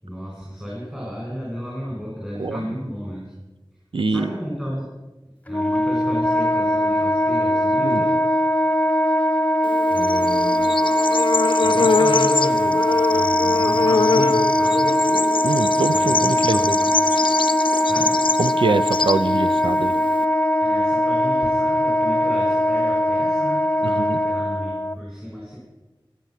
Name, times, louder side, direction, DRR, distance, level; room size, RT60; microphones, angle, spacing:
voice 1, 0.0-3.3 4.1-4.9 5.4-8.2 9.3-10.7 11.6-15.0 15.9-16.9 17.9-18.2 20.6-25.6, equal, 10° right, -4 dB, 5.8 m, -33 dB
voice 2, 3.9-4.3 7.8-8.0 15.4-16.8 18.4-19.9 23.8-24.2, right 3 dB, 85° right, 11 dB, 0.6 m, -24 dB
Wind instrument woodwind instrument, 5.5-25.0, left 1 dB, 15° left, 0.6 m, -20 dB
Bird / Insect, 9.6-20.2, left 4 dB, 80° left, 0.5 m, -24 dB
22.5 x 8.5 x 5.8 m, 1.1 s
wide cardioid pair, 55°, 9 cm